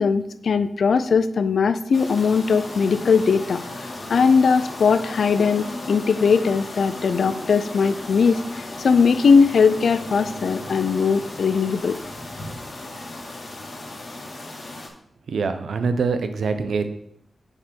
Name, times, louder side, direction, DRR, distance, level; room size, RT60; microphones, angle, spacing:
voice 1, 0.0-12.0, left 5 dB, 80° left, 12 dB, 0.5 m, -20 dB
sound 1, 1.9-14.9, left 2 dB, 55° left, 2.1 m, -35 dB
voice 2, 15.3-16.9, right 4 dB, 90° right, 8 dB, 0.8 m, -24 dB
6.7 x 5.1 x 6.3 m, 0.73 s
wide cardioid pair, 80°, 0 cm